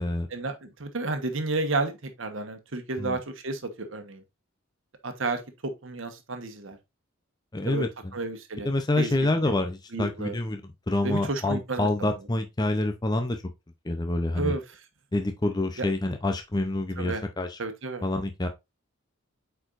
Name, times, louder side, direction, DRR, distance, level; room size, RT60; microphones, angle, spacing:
voice 1, 0.3-4.2 5.0-6.8 7.7-7.9 8.1-8.7 9.0-9.1 9.9-10.3 11.0-12.1 14.4-14.6 15.8-15.9 17.0-17.2 17.6-18.1, right 3 dB, 70° right, 1.2 m, -31 dB
voice 2, 7.5-8.1 8.6-13.4 13.8-14.6 15.1-17.6 18.0-18.5, left 2 dB, 20° left, 0.6 m, -27 dB
8.3 x 4.6 x 2.5 m
head